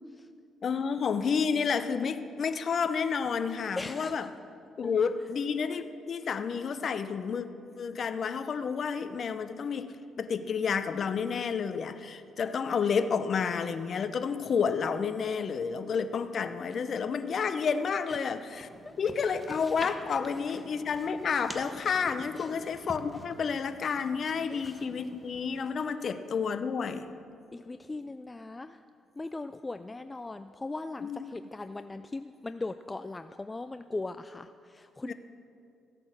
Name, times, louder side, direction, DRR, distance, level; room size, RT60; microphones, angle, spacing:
voice 1, 0.6-4.3 4.8-7.5 7.8-18.7 19.0-27.1 31.0-31.2 35.0-35.1, left 6 dB, 50° left, 10 dB, 0.7 m, -30 dB
voice 2, 3.8-4.3 4.8-4.9 18.1-18.2 20.5-20.6 22.3-22.5 24.5-24.8 27.5-28.8 29.2-35.1, left 2 dB, 20° left, 10 dB, 0.4 m, -39 dB
sound 1, 18.5-25.7, right 1 dB, 10° right, 1.3 m, -48 dB
14.5 x 8.6 x 6.5 m, 2.5 s
cardioid pair, 90°, 0 cm